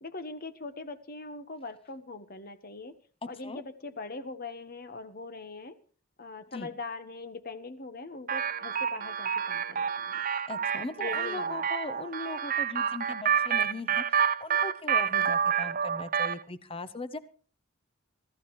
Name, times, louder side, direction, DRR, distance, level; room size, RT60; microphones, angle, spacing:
voice 1, 0.0-2.9 3.3-5.7 6.2-9.8 11.0-11.6, left 3 dB, 45° left, 10 dB, 1.3 m, -41 dB
sound 1, 8.3-16.4, right 7 dB, 45° right, 0.7 m, -29 dB
voice 2, 10.5-17.2, left 2 dB, 25° left, 13 dB, 0.9 m, -39 dB
25.0 x 14.5 x 3.2 m, 0.42 s
head